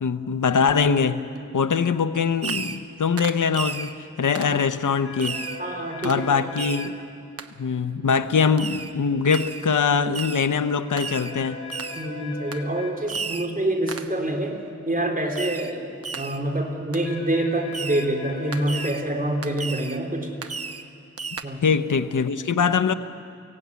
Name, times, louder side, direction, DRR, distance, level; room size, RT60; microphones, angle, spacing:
voice 1, 0.0-1.2 1.5-5.4 6.0-7.0 7.6-11.6 21.6-22.9, left 6 dB, 80° left, 11 dB, 0.9 m, -22 dB
Fireworks, 2.4-2.9 3.2-3.9 4.4-4.6 5.2-5.6 6.0-6.2 6.6-6.9 7.4-7.5 8.6-8.9 9.3-9.7 10.1-10.5 11.0-11.4 11.7-12.1 12.5-12.7 13.1-13.5 13.9-14.2 15.4-15.8 16.0-16.4 16.9-17.1 17.7-18.1 18.5-19.0 19.4-20.0 20.4-20.9 21.2-21.4, right 5 dB, 50° right, 1.0 m, -33 dB
sound 1, 5.1-6.9 11.1-12.9 17.1-18.9, left 3 dB, 55° left, 4.2 m, -38 dB
voice 2, 5.6-6.3 12.0-14.6 14.9-20.4 21.4-21.6, right 1 dB, 30° right, 2 dB, 3.3 m, -26 dB
23.0 x 17.0 x 9.5 m, 2.6 s
wide cardioid pair, 60°, 30 cm